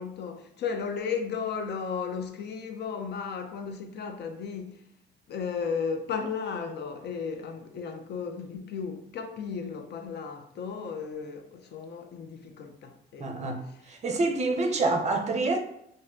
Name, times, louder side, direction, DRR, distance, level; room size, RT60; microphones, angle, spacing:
voice 1, 0.0-4.9 5.3-14.0, left 6 dB, 60° left, 0.5 m, -35 dB
voice 2, 13.2-15.6, right 3 dB, 35° right, 0.5 m, -27 dB
2.6 x 2.1 x 3.6 m
cardioid pair, 90°, 20 cm